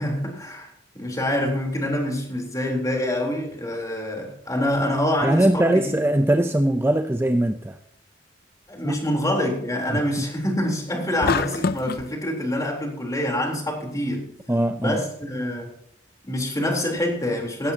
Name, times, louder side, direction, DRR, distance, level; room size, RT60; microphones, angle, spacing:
voice 1, 0.0-6.0 8.7-14.3 14.8-15.8 16.2-17.7, left 1 dB, 20° left, 1 dB, 3.7 m, -26 dB
voice 2, 5.2-7.8 8.8-9.0 9.9-10.0 14.5-15.0, right 1 dB, 10° right, 7 dB, 0.7 m, -21 dB
sound 1, 11.2-12.1, left 5 dB, 55° left, 0.5 m, -25 dB
17.0 x 15.0 x 2.9 m, 0.67 s
head